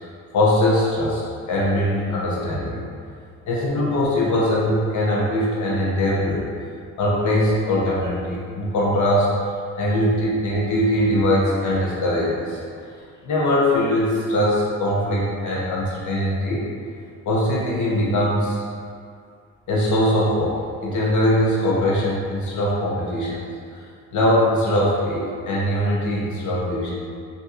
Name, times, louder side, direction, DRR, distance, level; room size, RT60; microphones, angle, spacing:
voice 1, 0.3-2.8 3.5-6.5 7.0-9.3 9.8-12.6 13.2-16.7 17.2-18.6 19.7-23.4 24.1-26.9, left 1 dB, 75° left, -5 dB, 0.9 m, -21 dB
5.8 x 2.8 x 2.5 m, 2.1 s
cardioid pair, 90°, 30 cm